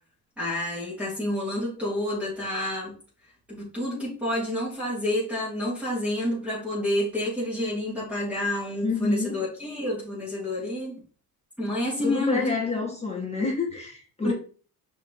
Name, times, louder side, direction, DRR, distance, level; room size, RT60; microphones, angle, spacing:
voice 1, 0.4-2.9 3.5-11.0 11.6-12.5 14.2-14.3, left 1 dB, 5° right, 3.1 m, -29 dB
voice 2, 8.8-9.3 12.0-14.3, left 4 dB, 15° left, 2.3 m, -28 dB
6.3 x 5.1 x 3.2 m
cardioid pair, 125°, 38 cm